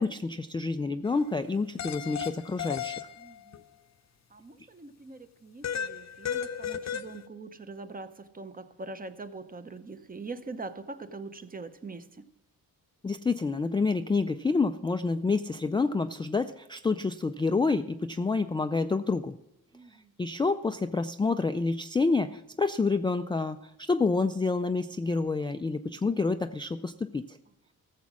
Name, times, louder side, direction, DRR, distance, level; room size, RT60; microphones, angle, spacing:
voice 1, 0.0-3.0 13.0-19.4 20.2-27.4, left 3 dB, 15° left, 0.3 m, -28 dB
sound 1, 1.1-1.2 1.8-3.6 5.6-7.3, left 8 dB, 50° left, 0.7 m, -35 dB
voice 2, 3.1-3.6 4.3-12.3 19.7-20.1, right 3 dB, 25° right, 0.8 m, -43 dB
14.5 x 7.2 x 6.1 m
cardioid pair, 115°, 35 cm